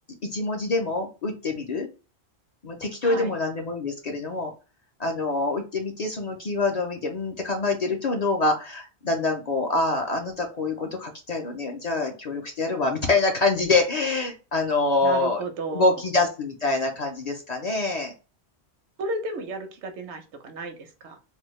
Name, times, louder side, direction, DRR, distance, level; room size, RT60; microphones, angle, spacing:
voice 1, 0.3-1.9 2.6-4.5 5.0-15.4 15.7-18.1, left 3 dB, 50° left, 2 dB, 0.5 m, -25 dB
voice 2, 15.0-15.9 19.0-21.2, right 2 dB, 90° right, 7 dB, 1.0 m, -33 dB
3.3 x 2.2 x 3.0 m, 0.33 s
omnidirectional pair, 1.1 m